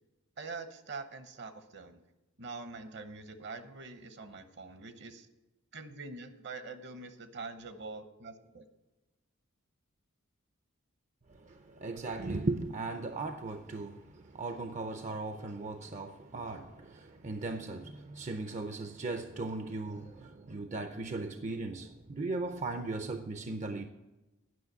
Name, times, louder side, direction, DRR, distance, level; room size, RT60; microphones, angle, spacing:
voice 1, 0.4-2.0 2.4-5.3 5.7-8.7, right 3 dB, 55° right, 0.9 m, -44 dB
voice 2, 11.5-23.9, right 3 dB, 35° right, 0.5 m, -37 dB
9.5 x 5.8 x 8.2 m
head